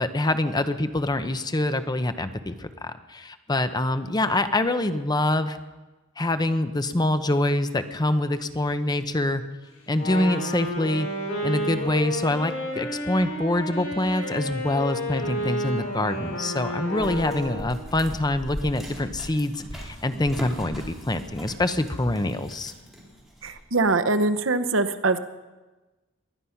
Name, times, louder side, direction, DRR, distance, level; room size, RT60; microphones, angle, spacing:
voice 1, 0.0-5.6 6.2-9.4 9.9-11.1 11.4-22.7, left 1 dB, 20° left, 10 dB, 0.8 m, -25 dB
Wind instrument woodwind instrument, 9.9-17.9, left 1 dB, 90° left, 6.1 m, -31 dB
sound 1, 17.0-23.7, equal, ahead, 4.3 m, -39 dB
voice 2, 23.4-25.2, right 3 dB, 70° right, 10 dB, 1.0 m, -23 dB
21.0 x 11.0 x 5.8 m, 1.2 s
head